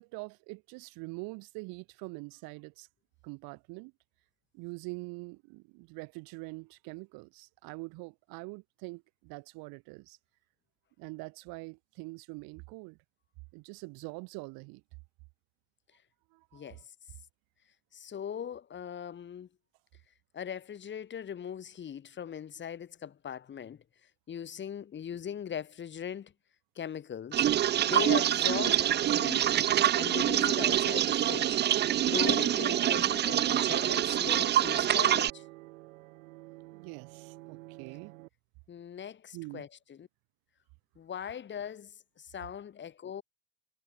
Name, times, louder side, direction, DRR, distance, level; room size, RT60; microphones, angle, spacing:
voice 1, 0.0-2.9 3.2-3.9 4.5-10.2 11.0-13.0 13.5-14.8 16.3-16.8 36.7-38.1 39.3-39.7, right 28 dB, 65° right, 3.1 m, -44 dB
voice 2, 16.5-16.8 17.9-19.5 20.3-23.8 24.3-26.3 26.8-27.5 27.8-29.5 29.9-31.6 32.0-35.4 38.7-40.1 41.0-43.2, left 8 dB, 30° left, 2.8 m, -39 dB
sound 1, 27.3-35.3, right 11 dB, 25° right, 0.7 m, -26 dB
sound 2, 28.7-38.3, right 21 dB, 85° right, 2.8 m, -51 dB
supercardioid pair, 130°, 39 cm